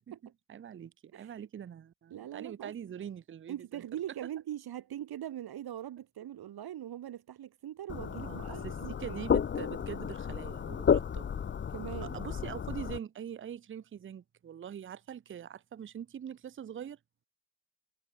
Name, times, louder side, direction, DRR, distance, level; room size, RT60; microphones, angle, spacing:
voice 1, 0.5-3.8 8.2-8.7 9.0-11.3 12.0-17.0, right 9 dB, 30° right, 0.6 m, -43 dB
voice 2, 1.1-1.5 2.1-2.7 3.5-9.2 11.7-12.2, right 11 dB, 65° right, 2.6 m, -41 dB
sound 1, 7.9-13.0, left 7 dB, 30° left, 0.7 m, -32 dB
cardioid pair, 105°, 40 cm